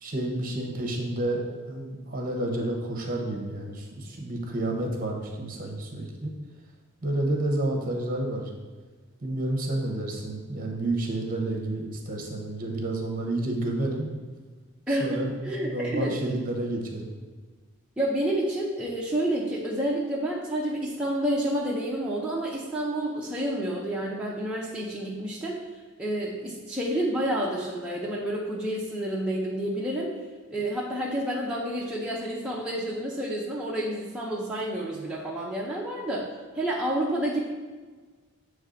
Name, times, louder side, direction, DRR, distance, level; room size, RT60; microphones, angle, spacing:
voice 1, 0.0-6.3 7.0-8.5 9.2-14.1 14.9-17.1, right 1 dB, 40° right, 2 dB, 0.9 m, -30 dB
voice 2, 14.9-16.2 18.0-25.6 26.0-30.1 30.5-37.4, right 1 dB, 5° right, -6 dB, 0.6 m, -29 dB
8.0 x 3.2 x 3.9 m, 1.4 s
head